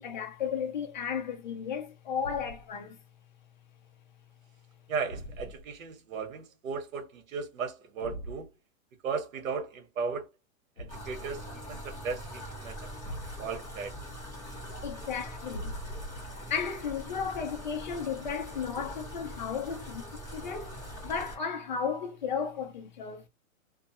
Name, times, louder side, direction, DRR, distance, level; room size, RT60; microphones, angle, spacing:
voice 1, 0.0-3.0 14.8-15.8 16.5-23.2, left 6 dB, 35° left, 0.5 m, -34 dB
Thump thud, 2.2-2.7 5.1-5.8 8.0-8.5 10.8-11.2 13.1-13.7 15.5-16.5, equal, 60° left, 1.0 m, -42 dB
voice 2, 4.9-8.5 9.0-10.3 10.8-12.9 13.4-14.0, right 5 dB, 80° right, 1.1 m, -36 dB
sound 1, 10.9-21.4, equal, 10° left, 1.4 m, -43 dB
2.5 x 2.3 x 2.8 m
hypercardioid pair, 180°, 40 cm